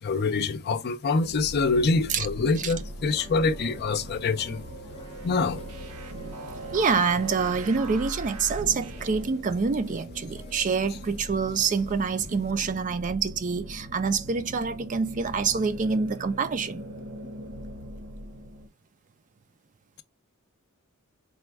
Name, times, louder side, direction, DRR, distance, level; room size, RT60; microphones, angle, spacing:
voice 1, 0.0-4.6 5.2-5.6 10.9-11.0, left 4 dB, 45° left, 0.5 m, -25 dB
sound 1, 1.2-18.7, equal, 60° right, 1.0 m, -41 dB
sound 2, 3.0-8.0 8.6-10.7 11.0-11.1 11.3-11.9 12.2-12.3, left 1 dB, 25° left, 0.9 m, -48 dB
sound 3, 4.9-9.4, right 4 dB, 80° right, 0.6 m, -42 dB
voice 2, 6.7-16.8, right 5 dB, 35° right, 0.4 m, -26 dB
4.1 x 2.3 x 4.5 m
head